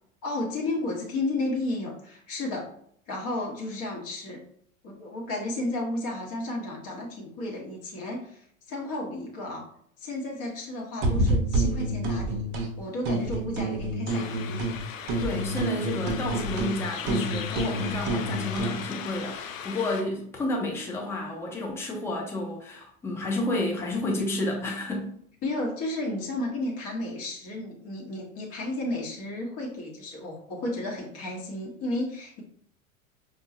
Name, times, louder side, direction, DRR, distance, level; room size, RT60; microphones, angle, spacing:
voice 1, 0.2-2.7 3.1-4.4 4.8-9.7 10.0-12.5 12.8-14.6 25.4-32.4, left 2 dB, 35° left, -2 dB, 1.0 m, -33 dB
sound 1, 11.0-12.7 13.0-14.8 15.1-18.8, right 1 dB, 40° right, 0.7 m, -28 dB
sound 2, 14.1-20.0, left 8 dB, 70° left, 0.5 m, -38 dB
voice 2, 15.2-25.2, left 2 dB, 5° left, -1 dB, 0.3 m, -31 dB
5.4 x 2.3 x 2.6 m, 0.65 s
figure-of-eight pair, 85°, 42 cm